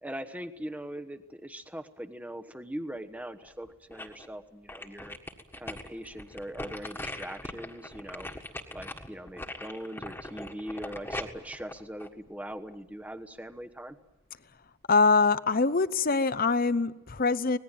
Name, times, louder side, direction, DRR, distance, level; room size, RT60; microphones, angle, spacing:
voice 1, 0.0-5.2 5.6-8.3 8.7-14.0, equal, 5° right, 9 dB, 1.1 m, -41 dB
sound 1, 3.4-4.3 4.7-12.7 13.2-13.3, left 1 dB, 10° left, 1.7 m, -41 dB
voice 2, 14.9-17.6, left 4 dB, 40° left, 15 dB, 0.8 m, -24 dB
25.5 x 19.5 x 9.1 m, 1.1 s
head